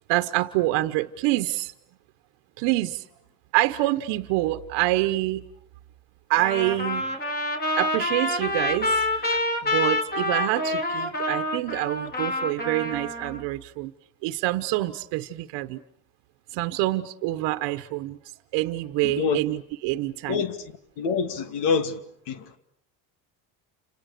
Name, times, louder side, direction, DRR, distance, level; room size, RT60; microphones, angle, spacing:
voice 1, 0.1-1.7 2.6-3.0 3.5-5.4 6.3-7.1 7.8-9.3 9.6-13.9 14.2-15.8 16.5-18.2 18.5-20.4, right 17 dB, 85° right, 1.2 m, -26 dB
Trumpet, 6.4-13.4, left 2 dB, 25° left, 4.5 m, -27 dB
voice 2, 19.0-19.4 20.3-22.0 22.3-22.5, left 5 dB, 80° left, 2.5 m, -26 dB
29.5 x 27.5 x 6.7 m
cardioid pair, 105°, 41 cm